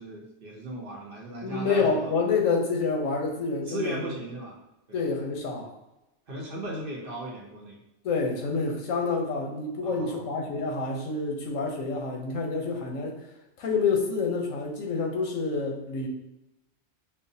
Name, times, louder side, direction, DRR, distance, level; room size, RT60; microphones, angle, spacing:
voice 1, 0.0-2.1 3.7-4.6 4.9-5.0 6.3-7.8 9.8-10.3, right 1 dB, 50° right, -2 dB, 0.8 m, -37 dB
voice 2, 1.4-4.0 4.9-5.7 8.0-13.2 13.6-16.1, left 4 dB, 85° left, 1 dB, 1.1 m, -28 dB
5.5 x 2.0 x 2.6 m, 0.93 s
omnidirectional pair, 1.3 m